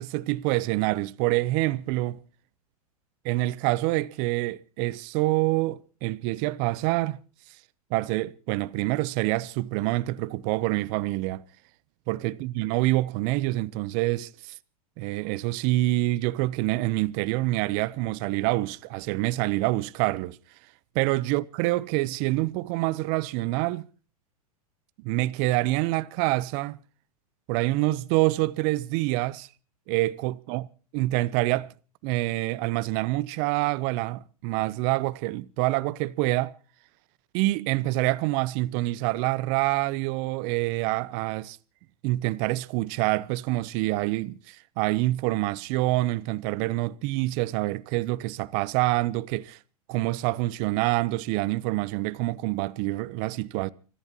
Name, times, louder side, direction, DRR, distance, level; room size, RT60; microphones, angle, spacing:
voice 1, 0.0-2.2 3.2-7.2 7.9-11.4 12.1-14.5 15.0-20.4 20.9-23.9 25.0-26.8 27.5-29.5 29.9-30.7 30.9-31.7 32.0-36.5 37.3-41.6 42.0-49.6 49.9-53.7, right 19 dB, 45° right, 0.8 m, -26 dB
30.0 x 14.5 x 3.0 m
hypercardioid pair, 105°, 19 cm